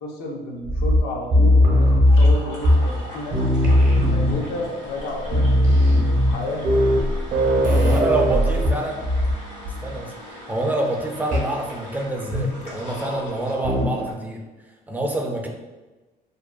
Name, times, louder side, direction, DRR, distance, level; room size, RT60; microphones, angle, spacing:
voice 1, 0.0-3.4 4.0-6.7 7.5-8.9, left 1 dB, 70° left, 1 dB, 0.6 m, -32 dB
sound 1, 0.6-3.1 3.3-4.6 5.0-5.1 5.3-9.4 9.6-10.0 11.3-11.5 12.3-12.7 13.6-14.0, left 1 dB, 50° right, 0.6 m, -18 dB
sound 2, 2.1-14.1, equal, 85° left, 1.3 m, -39 dB
voice 2, 7.7-9.0 9.8-14.4 14.9-15.5, right 1 dB, 10° right, 1 dB, 0.4 m, -27 dB
2.6 x 2.2 x 2.3 m, 1.2 s
cardioid pair, 110°, 17 cm